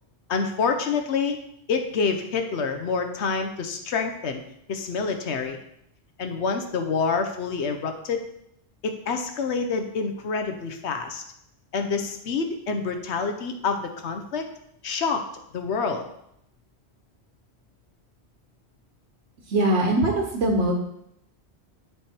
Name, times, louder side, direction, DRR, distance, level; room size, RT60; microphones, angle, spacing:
voice 1, 0.3-1.4 1.7-4.4 4.7-5.6 6.2-8.2 8.8-11.2 11.7-14.4 14.8-15.2 15.5-16.0, left 5 dB, 90° left, 6 dB, 1.1 m, -27 dB
voice 2, 19.5-20.7, right 1 dB, 90° right, 0 dB, 1.2 m, -22 dB
10.0 x 3.5 x 4.4 m, 0.76 s
omnidirectional pair, 1.1 m